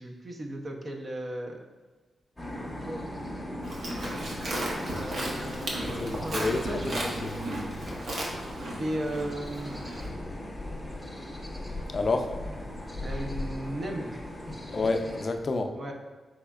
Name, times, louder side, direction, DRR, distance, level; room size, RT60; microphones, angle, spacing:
voice 1, 0.0-1.6 2.6-3.1 3.7-3.8 4.8-7.7 8.8-9.7 13.0-14.2 15.7-15.9, right 1 dB, 40° right, 2 dB, 0.6 m, -36 dB
sound 1, 2.4-15.3, left 1 dB, 10° left, 0.8 m, -38 dB
Livestock farm animals working animals, 3.6-10.1, right 1 dB, 65° right, 0.9 m, -35 dB
voice 2, 6.0-7.3 11.9-12.3 14.7-15.7, left 3 dB, 45° left, 5 dB, 0.4 m, -29 dB
4.8 x 4.1 x 2.4 m, 1.3 s
wide cardioid pair, 105°, 0 cm